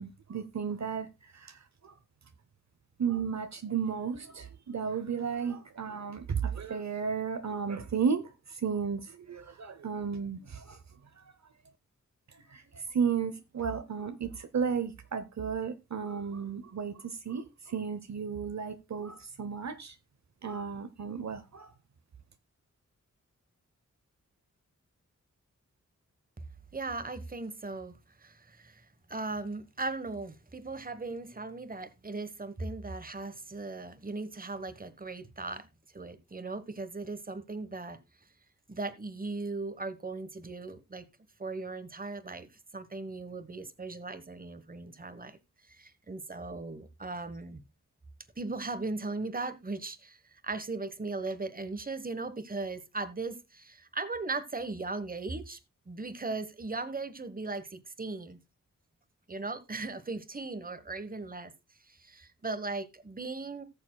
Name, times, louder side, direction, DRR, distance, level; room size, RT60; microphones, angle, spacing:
voice 1, 0.0-1.6 1.8-1.9 3.0-10.8 12.5-20.0 20.4-21.7, right 6 dB, 60° right, 0.8 m, -34 dB
voice 2, 26.7-35.7 35.9-38.0 38.7-41.1 41.4-45.4 45.7-47.6 48.4-55.6 55.9-58.4 59.3-61.5 61.9-63.6, right 3 dB, 30° right, 1.2 m, -38 dB
18.5 x 7.0 x 2.3 m
wide cardioid pair, 90°, 31 cm